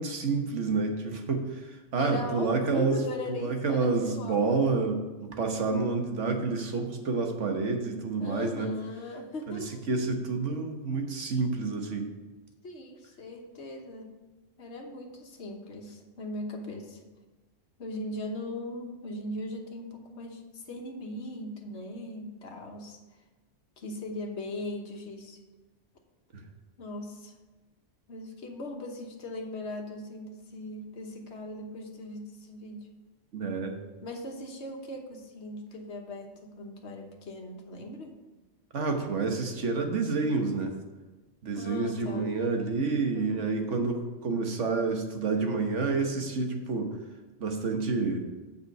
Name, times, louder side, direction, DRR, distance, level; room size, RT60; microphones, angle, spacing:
voice 1, 0.0-3.0 3.3-8.7 9.5-9.6 9.9-12.1 26.3-26.4 33.3-33.8 38.7-40.7 41.4-46.9 47.4-48.2, right 4 dB, 70° right, 4 dB, 1.4 m, -29 dB
voice 2, 2.0-4.7 8.2-9.8 12.6-14.1 14.6-17.0 17.8-23.0 23.8-25.4 26.8-27.3 28.1-32.9 34.0-38.1 41.5-42.3 43.1-43.6, left 1 dB, 60° left, 2 dB, 1.5 m, -39 dB
7.5 x 5.6 x 6.7 m, 1.2 s
omnidirectional pair, 1.3 m